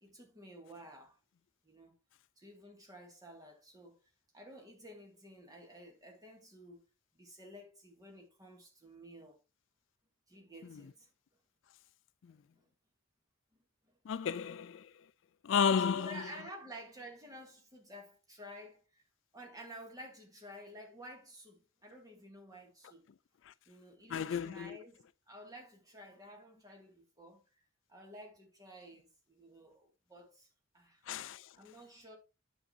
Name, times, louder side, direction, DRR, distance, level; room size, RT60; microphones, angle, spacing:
voice 1, 0.0-1.2 1.6-1.9 2.4-6.9 7.1-9.4 10.3-11.1 12.5-12.7 13.9-14.3 15.8-19.0 19.3-23.1 23.7-27.4 27.9-30.5 30.7-31.0 31.6-32.2, equal, 20° right, 2.3 m, -52 dB
voice 2, 14.1-14.9 15.4-16.1 24.1-24.8 31.1-31.5, left 7 dB, 65° left, 0.4 m, -32 dB
9.6 x 6.5 x 2.7 m
head